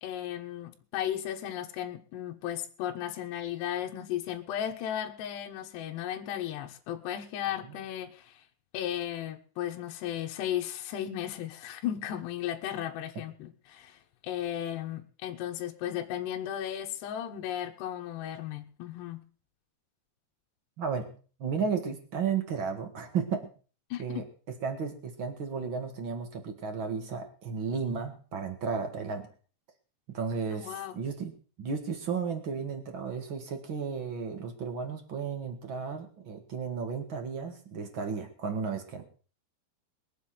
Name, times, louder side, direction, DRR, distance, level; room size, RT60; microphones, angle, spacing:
voice 1, 0.0-8.4 8.7-19.2 23.9-24.2 30.5-31.0, left 11 dB, 70° left, 2 dB, 3.1 m, -35 dB
voice 2, 20.8-21.1 21.4-23.5 24.0-29.3 30.1-31.3 31.6-39.0, right 5 dB, 60° right, 5 dB, 1.2 m, -34 dB
22.0 x 7.6 x 5.9 m, 0.39 s
omnidirectional pair, 5.4 m